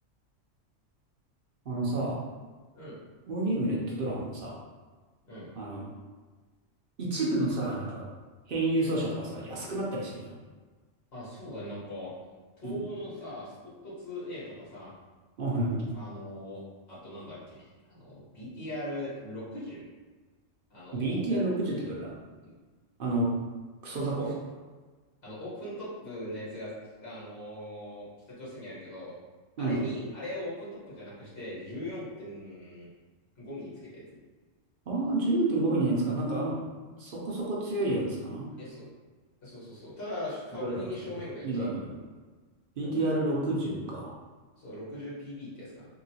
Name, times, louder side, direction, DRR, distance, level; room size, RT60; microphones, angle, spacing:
voice 1, 1.7-2.2 3.3-4.6 5.5-5.9 7.0-8.1 8.5-10.3 12.6-12.8 15.4-15.9 20.9-22.1 23.0-23.3 23.8-24.3 29.6-29.8 34.9-36.6 37.0-38.5 40.6-40.9 41.4-42.0 42.8-44.1, right 2 dB, 55° right, -4 dB, 0.7 m, -29 dB
voice 2, 11.1-12.1 12.6-14.9 15.9-16.6 16.9-19.8 20.7-21.2 22.4-22.5 23.8-24.0 24.2-24.3 25.2-26.7 27.0-29.1 29.6-32.9 33.4-34.0 38.6-38.8 39.4-41.7 42.8-43.1 44.6-45.9, left 1 dB, 50° left, -8 dB, 1.4 m, -40 dB
2.9 x 2.8 x 2.7 m, 1.4 s
omnidirectional pair, 1.3 m